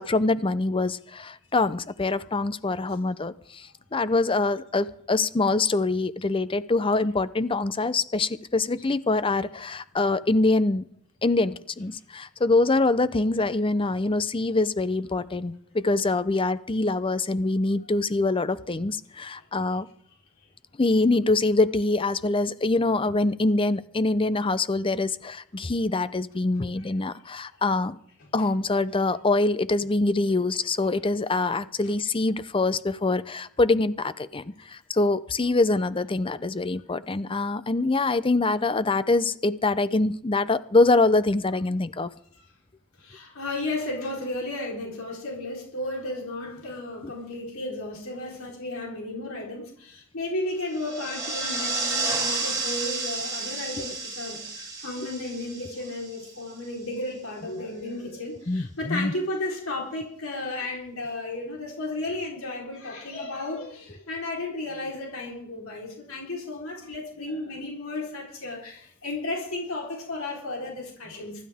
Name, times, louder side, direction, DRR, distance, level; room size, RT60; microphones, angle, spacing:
voice 1, 0.0-10.8 11.2-19.9 20.8-28.0 28.3-42.1 47.0-47.1 53.8-53.9 58.5-59.1, left 2 dB, 25° left, 15 dB, 0.6 m, -24 dB
voice 2, 43.0-71.4, left 2 dB, 70° left, -1 dB, 4.0 m, -34 dB
sound 1, 50.7-56.5, right 3 dB, 15° right, 4.3 m, -31 dB
24.0 x 12.5 x 3.6 m, 0.62 s
head